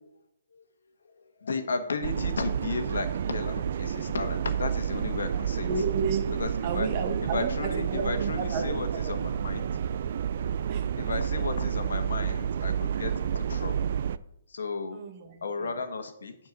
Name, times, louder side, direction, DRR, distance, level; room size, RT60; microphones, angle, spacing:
voice 1, 1.0-5.7 6.4-6.9 7.2-9.7 11.0-14.0 14.5-15.0 15.4-16.4, left 4 dB, 80° left, 7 dB, 1.4 m, -34 dB
sound 1, 2.0-14.2, right 8 dB, 45° right, 0.3 m, -30 dB
voice 2, 5.6-6.3 6.6-9.1 10.7-11.2 14.9-15.7, right 5 dB, 25° right, 3 dB, 1.2 m, -32 dB
9.3 x 4.6 x 7.4 m, 0.79 s
hypercardioid pair, 170°, 0 cm